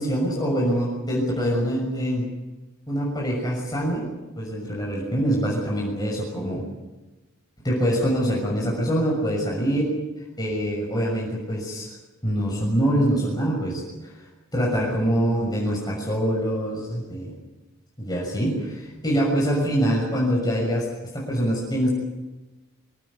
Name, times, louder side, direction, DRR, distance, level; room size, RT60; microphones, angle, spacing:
voice 1, 0.0-2.2 2.9-4.1 4.4-6.6 7.6-9.9 10.4-11.9 12.2-14.1 14.5-17.3 18.0-20.9 21.1-21.9, equal, 20° left, -3 dB, 6.5 m, -24 dB
26.5 x 18.5 x 8.3 m, 1.1 s
head